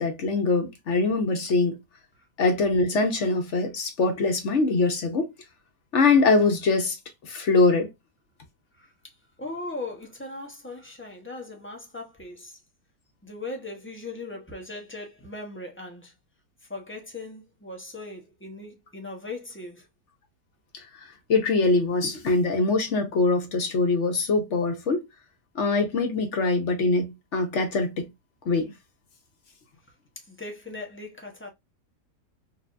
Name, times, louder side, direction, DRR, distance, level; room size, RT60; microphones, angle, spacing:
voice 1, 0.0-1.8 2.4-5.3 5.9-7.0 7.2-7.9 20.7-25.0 25.5-28.1 28.4-28.7, left 3 dB, 50° left, 1.1 m, -23 dB
voice 2, 8.8-12.6 13.2-16.1 16.7-19.8 30.2-31.5, left 2 dB, 10° left, 0.6 m, -39 dB
4.6 x 2.6 x 2.5 m
omnidirectional pair, 1.8 m